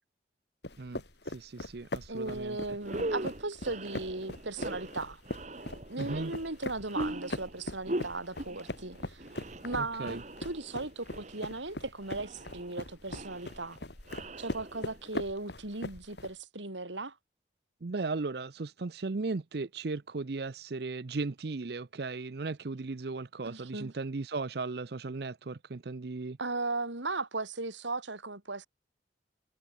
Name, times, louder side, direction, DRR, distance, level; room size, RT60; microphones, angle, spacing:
sound 1, 0.6-16.3, left 1 dB, 70° left, 3.3 m, -41 dB
voice 1, 0.8-2.8 6.0-6.3 9.8-10.2 17.8-26.4, right 3 dB, 60° right, 0.6 m, -36 dB
voice 2, 2.1-5.2 5.9-9.2 9.6-13.8 14.4-17.2 23.4-23.9 26.4-28.7, right 2 dB, 90° right, 3.8 m, -37 dB
sound 2, 2.3-2.4 2.8-15.1, right 1 dB, 40° right, 1.7 m, -41 dB
head